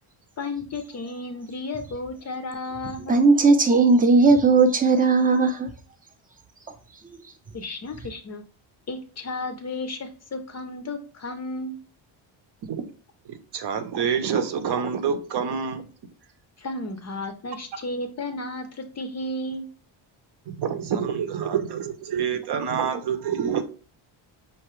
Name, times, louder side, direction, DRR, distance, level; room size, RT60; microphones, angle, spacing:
voice 1, 0.4-3.2 7.5-8.4 8.9-11.8 16.6-19.7, left 2 dB, 35° left, 0.5 m, -33 dB
voice 2, 3.1-5.7, right 3 dB, 20° right, 0.5 m, -17 dB
voice 3, 13.3-15.8 20.5-23.6, right 7 dB, 55° right, 0.7 m, -27 dB
5.8 x 2.8 x 3.0 m
cardioid pair, 160°, 50 cm